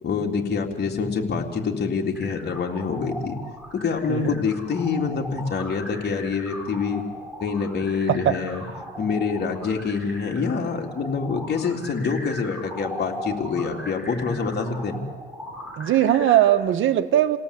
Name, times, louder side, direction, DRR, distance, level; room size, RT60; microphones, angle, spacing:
voice 1, 0.0-3.4 3.7-7.0 7.4-8.7 9.0-15.0, left 5 dB, 55° left, 1 dB, 3.6 m, -26 dB
sound 1, 2.1-16.5, equal, 5° right, 7.6 m, -39 dB
voice 2, 15.8-17.4, right 11 dB, 80° right, 8 dB, 1.5 m, -20 dB
29.5 x 18.0 x 8.5 m, 1.5 s
cardioid pair, 90°, 20 cm